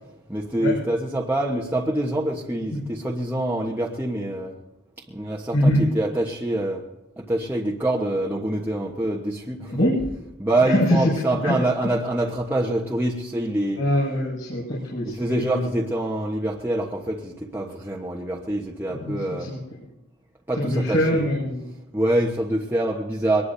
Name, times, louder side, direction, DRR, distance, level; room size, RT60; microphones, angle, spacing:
voice 1, 0.3-4.6 5.1-6.9 7.2-9.8 10.4-13.8 15.0-19.6 20.5-21.3 21.9-23.4, right 1 dB, 10° right, 1.2 m, -25 dB
voice 2, 5.5-5.9 9.7-9.9 10.7-11.0 11.4-11.5 13.8-15.6 18.9-19.6 20.5-21.6, equal, 65° left, 5.9 m, -23 dB
23.0 x 20.0 x 2.7 m
head